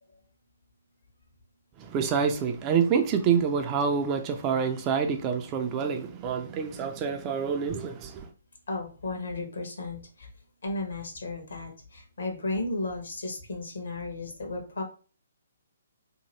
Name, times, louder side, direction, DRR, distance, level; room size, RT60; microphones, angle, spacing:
voice 1, 1.8-8.3, right 6 dB, 25° right, 0.3 m, -27 dB
voice 2, 8.7-10.3 10.6-14.8, left 2 dB, 65° left, 1.0 m, -34 dB
2.8 x 2.5 x 2.9 m
figure-of-eight pair, 130°, 0 cm